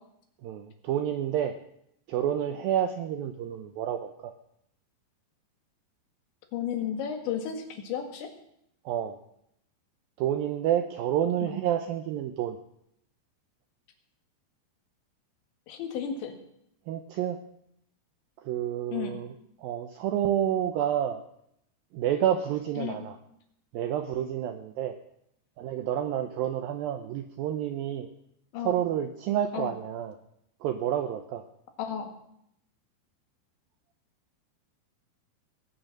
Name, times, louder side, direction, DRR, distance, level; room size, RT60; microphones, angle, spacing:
voice 1, 0.4-1.5 2.1-4.3 8.9-9.2 10.2-12.6 16.9-17.4 18.4-19.3 19.6-21.2 21.9-23.2 23.7-24.9 25.6-28.1 28.6-30.2 30.6-31.4, right 10 dB, 85° right, 7 dB, 2.1 m, -29 dB
voice 2, 6.5-8.3 11.4-11.6 15.7-16.3 18.9-19.2 22.8-23.0 28.5-28.7 29.5-29.7 31.8-32.1, left 8 dB, 85° left, 5 dB, 4.1 m, -33 dB
19.5 x 9.0 x 6.5 m, 0.74 s
omnidirectional pair, 5.1 m